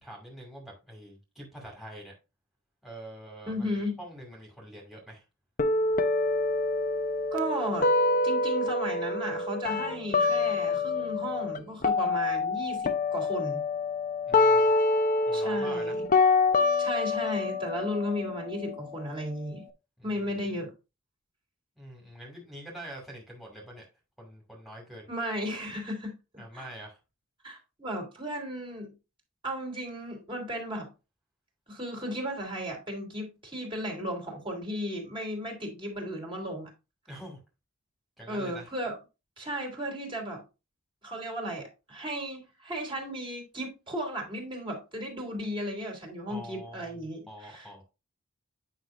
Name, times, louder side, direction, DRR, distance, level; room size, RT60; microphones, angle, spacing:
voice 1, 0.0-2.1 2.8-3.7 4.0-5.2 14.2-14.7 15.3-16.0 20.0-20.2 21.8-23.9 24.2-25.1 26.4-27.0 37.1-37.4 38.2-38.7 46.3-47.8, right 1 dB, ahead, 2.3 m, -45 dB
voice 2, 3.5-4.0 7.3-7.9 8.2-13.6 15.3-15.9 16.8-19.6 20.0-20.7 25.1-26.1 26.5-26.7 27.4-28.9 29.4-30.9 31.7-36.7 38.3-39.0 39.4-40.4 41.0-47.8, equal, 25° right, 3.0 m, -35 dB
sound 1, 5.6-11.6 11.8-19.6, left 3 dB, 40° left, 0.8 m, -26 dB
9.6 x 5.7 x 2.6 m
head